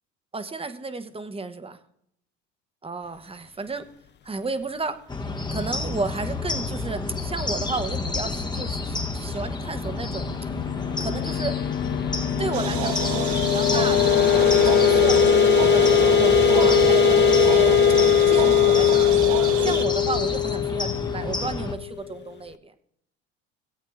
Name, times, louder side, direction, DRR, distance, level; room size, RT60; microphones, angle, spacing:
voice 1, 0.3-1.8 2.8-3.9 4.2-5.0 5.5-10.3 11.0-11.5 12.4-15.2 15.7-17.8 18.3-22.7, right 3 dB, 15° right, 10 dB, 1.3 m, -33 dB
sound 1, 5.1-21.7, left 3 dB, 15° left, 1.3 m, -30 dB
sound 2, 9.6-22.1, left 12 dB, 35° left, 0.5 m, -21 dB
sound 3, 12.5-19.9, right 8 dB, 80° right, 1.4 m, -25 dB
18.0 x 8.3 x 3.6 m, 0.71 s
supercardioid pair, 85°, 33 cm